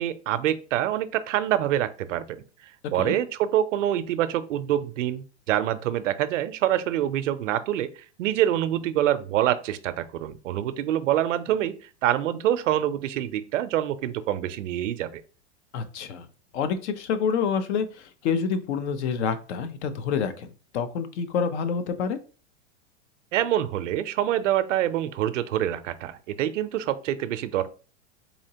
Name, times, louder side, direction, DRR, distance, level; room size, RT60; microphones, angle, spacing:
voice 1, 0.0-2.4 2.9-7.9 8.2-11.7 12.0-15.2 23.3-27.7, right 12 dB, 80° right, 13 dB, 0.6 m, -26 dB
voice 2, 15.7-16.3 16.5-22.2, left 6 dB, 65° left, 10 dB, 0.7 m, -27 dB
4.2 x 2.9 x 2.8 m, 0.37 s
hypercardioid pair, 120°, 36 cm